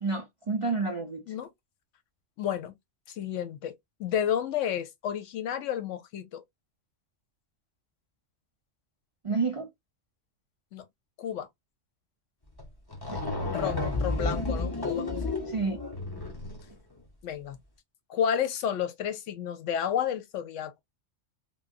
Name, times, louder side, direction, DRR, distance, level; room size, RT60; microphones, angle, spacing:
voice 1, 0.0-1.2 9.2-9.7 13.1-13.2 15.5-15.8, right 4 dB, 50° right, 0.3 m, -29 dB
voice 2, 2.4-2.7 3.1-3.7 4.0-6.4 10.7-10.9 11.2-11.5 13.5-15.4 17.2-17.6 18.1-20.7, left 9 dB, 80° left, 1.0 m, -31 dB
sound 1, 12.6-12.7 12.9-16.7, left 3 dB, 20° left, 0.8 m, -31 dB
3.4 x 2.2 x 2.4 m
omnidirectional pair, 1.3 m